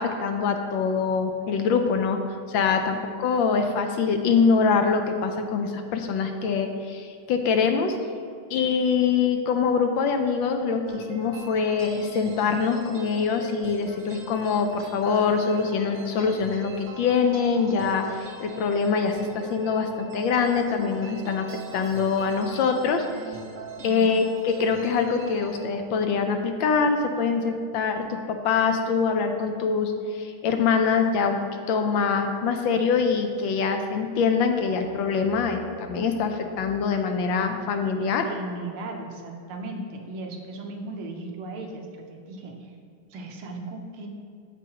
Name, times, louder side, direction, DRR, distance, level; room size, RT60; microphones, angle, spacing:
voice 1, 0.0-8.0 8.5-21.5 21.7-23.0 23.8-38.3, left 5 dB, 75° left, 5 dB, 1.3 m, -24 dB
sound 1, 10.9-25.6, right 3 dB, 50° right, 0.9 m, -42 dB
voice 2, 38.2-42.7 43.1-44.1, right 2 dB, 85° right, 2 dB, 1.8 m, -37 dB
14.5 x 4.8 x 2.9 m, 2.4 s
omnidirectional pair, 2.3 m